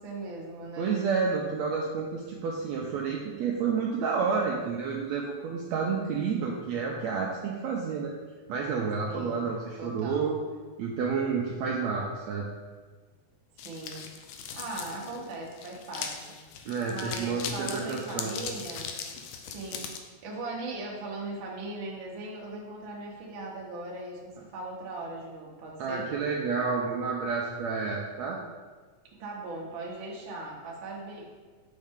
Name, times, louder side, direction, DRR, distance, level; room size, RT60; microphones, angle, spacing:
voice 1, 0.0-1.0 9.1-9.4 9.8-10.3 13.6-14.0 14.5-16.4 16.9-18.9 19.5-26.1 29.2-31.3, right 2 dB, 55° right, -2 dB, 1.4 m, -39 dB
voice 2, 0.8-8.1 8.5-10.4 10.8-12.5 16.7-18.4 25.8-28.4, right 5 dB, 80° right, -2 dB, 1.7 m, -30 dB
sound 1, 13.6-20.0, left 7 dB, 80° left, 2.1 m, -39 dB
6.4 x 5.7 x 3.6 m, 1.4 s
omnidirectional pair, 3.6 m